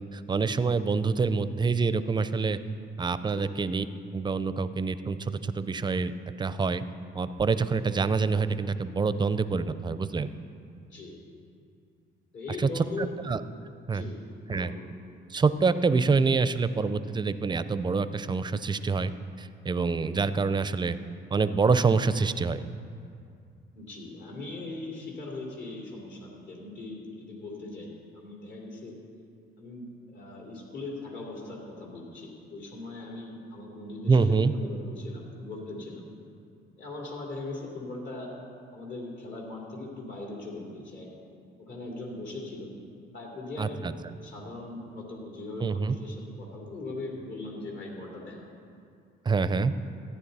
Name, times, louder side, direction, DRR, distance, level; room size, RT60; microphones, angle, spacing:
voice 1, 0.0-2.6 3.0-3.9 4.1-6.1 6.4-6.8 7.1-10.3 12.6-12.7 13.0-13.4 13.9-14.0 14.5-14.7 15.3-19.1 19.4-21.0 21.3-22.6 34.1-34.5 43.6-43.9 45.6-45.9 49.3-49.7, right 4 dB, 20° right, 13 dB, 0.5 m, -26 dB
voice 2, 12.3-13.1 13.9-14.1 14.5-14.8 23.7-29.0 29.6-36.1 36.8-38.3 38.7-41.1 41.6-42.8 43.1-43.9 44.2-48.4, left 2 dB, 65° left, -2 dB, 3.0 m, -40 dB
14.5 x 9.7 x 4.1 m, 2.4 s
cardioid pair, 90°, 20 cm